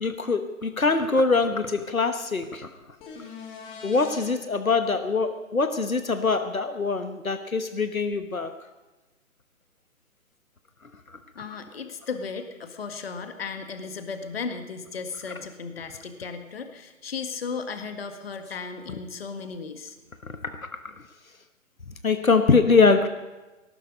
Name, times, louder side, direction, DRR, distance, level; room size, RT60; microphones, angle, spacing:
voice 1, 0.0-2.7 3.8-8.5 20.3-20.7 22.0-23.1, left 4 dB, 85° left, 9 dB, 1.2 m, -23 dB
sound 1, 3.0-4.3 8.1-8.2, left 5 dB, 15° left, 1.7 m, -41 dB
voice 2, 11.4-20.0, left 5 dB, 45° left, 7 dB, 1.7 m, -35 dB
18.5 x 14.0 x 5.3 m, 1.1 s
figure-of-eight pair, 140°, 40 cm